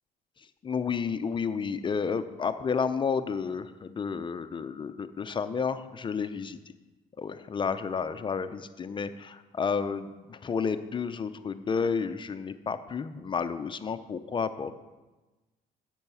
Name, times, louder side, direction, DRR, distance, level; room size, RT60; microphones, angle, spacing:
voice 1, 0.6-6.6 7.2-14.7, left 5 dB, 30° left, 11 dB, 0.6 m, -31 dB
10.5 x 7.8 x 5.6 m, 1.2 s
cardioid pair, 110°, 17 cm